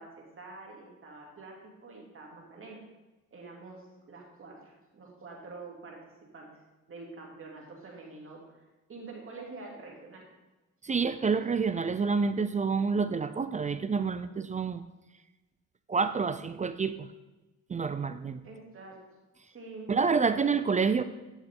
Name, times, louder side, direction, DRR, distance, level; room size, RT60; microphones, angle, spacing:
voice 1, 0.0-2.8 3.3-6.0 6.3-6.6 6.9-8.6 8.9-10.2 18.4-19.0 19.5-19.9, right 3 dB, 45° right, -1 dB, 2.5 m, -46 dB
voice 2, 10.8-14.8 15.9-17.1 17.7-18.4 19.9-21.0, right 5 dB, 25° right, 12 dB, 0.4 m, -28 dB
11.5 x 6.3 x 3.6 m, 1.1 s
cardioid pair, 90°, 30 cm